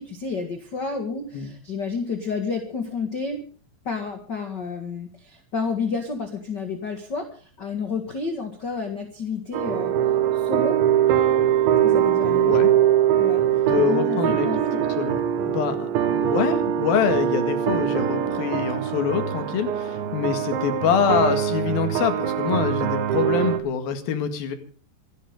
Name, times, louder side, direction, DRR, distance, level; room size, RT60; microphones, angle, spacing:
voice 1, 0.0-3.4 3.8-9.9 10.3-10.8 11.8-12.6 13.2-14.8, left 4 dB, 45° left, 5 dB, 1.4 m, -30 dB
sound 1, 9.5-23.6, right 10 dB, 85° right, 3.9 m, -22 dB
voice 2, 12.3-12.7 13.7-14.5 14.8-24.6, left 7 dB, 60° left, 8 dB, 3.4 m, -25 dB
27.0 x 11.5 x 3.7 m, 0.41 s
omnidirectional pair, 5.1 m